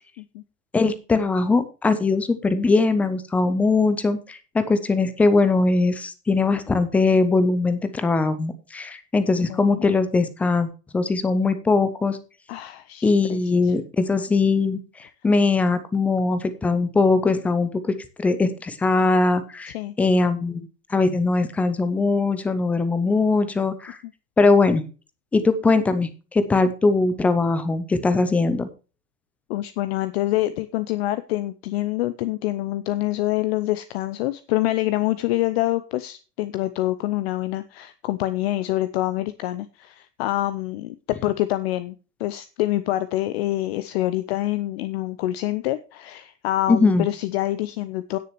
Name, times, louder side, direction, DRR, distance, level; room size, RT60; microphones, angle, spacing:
voice 1, 0.7-12.2 13.0-14.8 15.2-24.0 24.4-24.8 25.3-28.7 46.7-47.1, left 3 dB, 5° left, 12 dB, 0.4 m, -21 dB
voice 2, 9.5-9.8 12.5-13.7 19.7-19.9 29.5-48.2, left 16 dB, 40° left, 13 dB, 0.7 m, -26 dB
17.0 x 6.5 x 3.1 m, 0.34 s
figure-of-eight pair, 95°, 48 cm